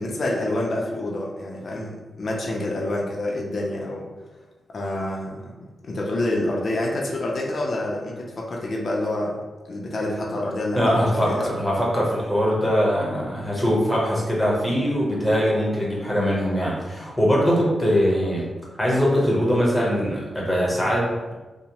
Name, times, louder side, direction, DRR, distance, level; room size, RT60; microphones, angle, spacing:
voice 1, 0.0-4.1 4.7-9.4 9.7-11.5, left 1 dB, 50° left, -2 dB, 0.4 m, -27 dB
voice 2, 10.7-18.5 18.8-21.3, equal, 10° left, -5 dB, 0.8 m, -22 dB
2.8 x 2.0 x 2.8 m, 1.2 s
wide cardioid pair, 105°, 0 cm